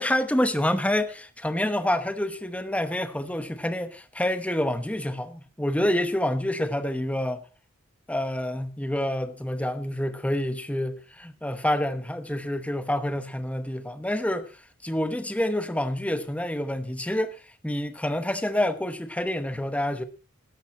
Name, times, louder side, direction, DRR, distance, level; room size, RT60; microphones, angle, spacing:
voice 1, 0.0-7.4 8.1-14.5 14.8-17.4 17.6-20.0, left 1 dB, 5° left, 1.0 m, -27 dB
14.0 x 12.0 x 4.3 m
head